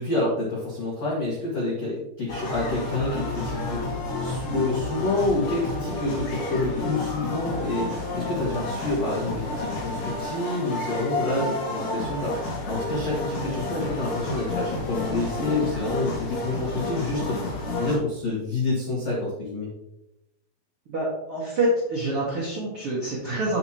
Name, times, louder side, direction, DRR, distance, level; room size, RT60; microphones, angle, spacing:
voice 1, 0.0-19.7, left 2 dB, 85° left, -4 dB, 1.4 m, -28 dB
Fantasilandia Ambiente, 2.3-18.0, left 2 dB, 50° left, 2.5 m, -30 dB
voice 2, 20.9-23.6, right 1 dB, 60° right, -6 dB, 1.4 m, -26 dB
8.0 x 8.0 x 2.9 m, 0.89 s
omnidirectional pair, 5.6 m